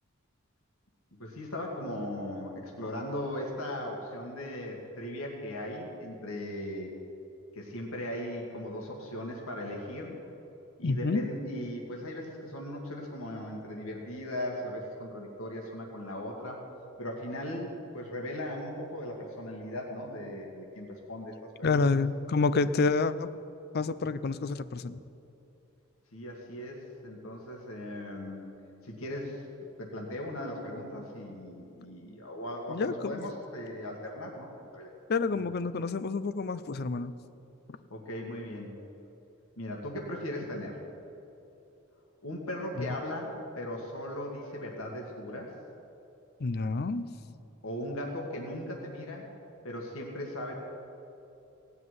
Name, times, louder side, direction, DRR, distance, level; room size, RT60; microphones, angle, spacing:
voice 1, 1.2-6.9 7.6-10.2 10.8-16.6 17.0-21.8 26.1-28.5 28.8-29.4 29.8-34.9 35.3-35.4 37.9-38.8 39.6-40.8 42.2-45.6 47.6-49.3 49.6-50.5, left 1 dB, 75° left, -1 dB, 1.8 m, -38 dB
voice 2, 10.8-11.2 21.6-23.3 23.7-25.0 32.7-33.2 35.1-37.1 42.8-42.9 46.4-47.1, left 4 dB, 50° left, 12 dB, 0.5 m, -28 dB
17.0 x 5.7 x 9.5 m, 2.9 s
head